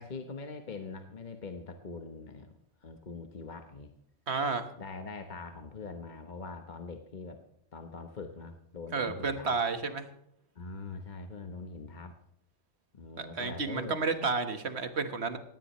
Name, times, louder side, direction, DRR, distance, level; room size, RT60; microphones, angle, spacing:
voice 1, 0.0-2.5 2.8-3.9 4.8-7.4 7.7-9.5 10.5-12.2 12.9-14.0, left 4 dB, 45° left, 6 dB, 1.1 m, -43 dB
voice 2, 4.3-4.6 8.9-10.1 13.2-15.4, right 4 dB, 70° right, 8 dB, 1.6 m, -31 dB
18.0 x 16.5 x 3.1 m, 0.76 s
omnidirectional pair, 1.2 m